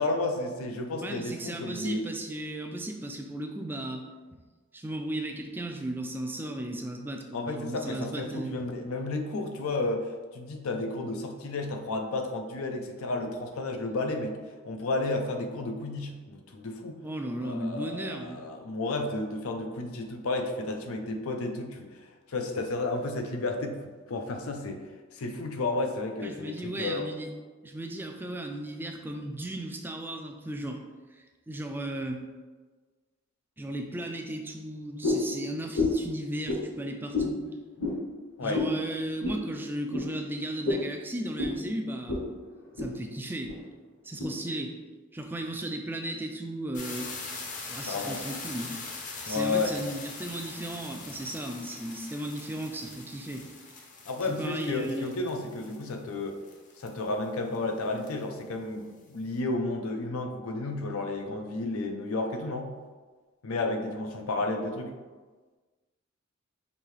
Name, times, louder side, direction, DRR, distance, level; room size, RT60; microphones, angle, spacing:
voice 1, 0.0-2.1 7.3-14.4 14.6-17.0 17.4-23.8 24.1-24.8 25.1-27.1 38.4-38.6 47.9-48.2 49.3-49.8 54.1-56.4 56.8-62.7 63.4-64.9, left 2 dB, 90° left, 4 dB, 0.5 m, -32 dB
voice 2, 1.0-4.0 4.7-8.6 17.0-18.4 26.2-27.3 27.6-30.8 31.2-32.2 33.6-37.4 38.4-42.3 42.8-43.5 44.0-44.7 45.1-47.1 47.7-48.8 49.2-53.5 54.3-55.2, right 1 dB, 10° right, 3 dB, 0.3 m, -35 dB
sound 1, 35.0-35.3 35.7-36.1 36.4-36.6 37.1-37.3 37.8-38.0 38.5-38.7 39.2-39.4 39.9-40.1 40.6-40.9 41.4-41.6 42.1-42.2 42.6-42.9 43.4-43.6 44.2-44.3, left 2 dB, 65° left, 0.9 m, -28 dB
sound 2, 46.7-57.0 57.5-57.6 57.8-58.2, left 4 dB, 40° left, 0.6 m, -42 dB
5.2 x 2.7 x 3.2 m, 1.4 s
head